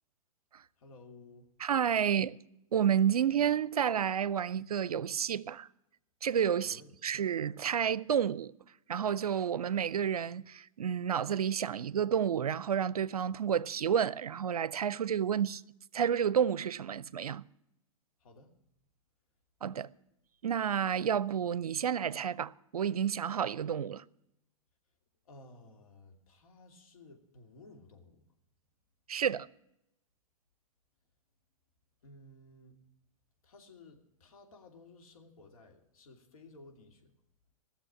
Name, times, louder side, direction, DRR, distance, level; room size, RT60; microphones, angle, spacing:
voice 1, 0.8-1.5 6.6-7.2 18.2-18.5 25.2-28.2 32.0-32.8 33.4-37.1, left 2 dB, 70° left, 2.7 m, -56 dB
voice 2, 1.6-2.4 2.7-5.7 6.2-8.5 8.9-15.6 15.9-17.4 19.6-19.9 20.4-24.0 29.1-29.5, right 8 dB, 85° right, 0.5 m, -30 dB
16.5 x 7.0 x 8.8 m
hypercardioid pair, 115°, 19 cm